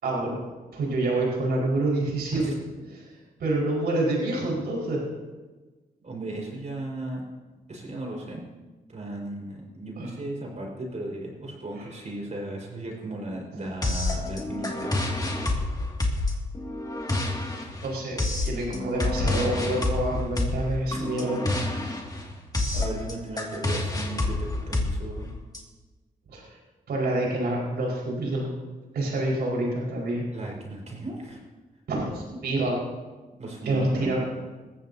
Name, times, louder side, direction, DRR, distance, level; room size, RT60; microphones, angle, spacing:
voice 1, 0.0-0.4 0.7-2.5 2.9-5.0 10.0-10.1 11.8-11.9 17.8-18.2 18.4-21.4 26.3-26.6 26.9-28.5 28.9-30.2 31.9-32.8 33.6-34.2, right 2 dB, 90° right, -3 dB, 5.3 m, -27 dB
voice 2, 6.0-7.2 7.7-8.4 8.9-15.0 17.6-17.7 20.9-21.0 22.7-25.3 30.3-31.4 33.4-34.2, right 1 dB, 45° right, -1 dB, 5.2 m, -36 dB
sound 1, 13.8-25.6, left 2 dB, 25° left, 2.4 m, -28 dB
20.5 x 14.5 x 2.9 m, 1.2 s
cardioid pair, 75°, 16 cm